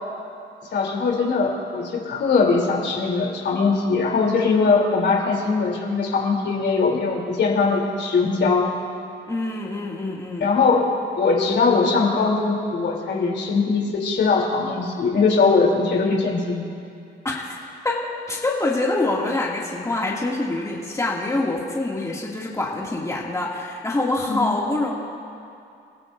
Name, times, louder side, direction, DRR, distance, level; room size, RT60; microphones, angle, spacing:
voice 1, 0.7-8.7 10.4-10.9 11.2-16.6 24.3-24.6, left 4 dB, 60° left, -2 dB, 3.4 m, -21 dB
voice 2, 9.3-10.5 17.3-17.6 17.8-24.9, left 2 dB, 15° left, -4 dB, 2.5 m, -25 dB
29.5 x 15.0 x 2.7 m, 2.5 s
cardioid pair, 90°, 20 cm